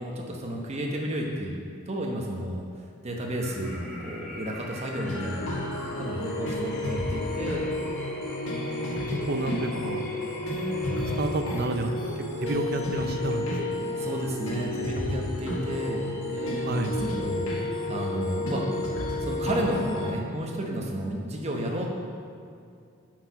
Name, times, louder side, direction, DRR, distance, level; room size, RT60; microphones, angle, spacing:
voice 1, 0.0-1.6 1.9-2.6 3.0-7.6 14.0-18.8 19.2-21.9, equal, 30° right, 0 dB, 0.9 m, -32 dB
sound 1, 3.3-11.7, left 2 dB, 5° left, 1.2 m, -41 dB
sound 2, 5.0-20.1, left 1 dB, 85° left, 1.5 m, -31 dB
voice 2, 8.5-10.0 11.2-13.8 16.6-16.9, right 2 dB, 50° right, 6 dB, 0.6 m, -31 dB
7.7 x 4.8 x 5.5 m, 2.4 s
head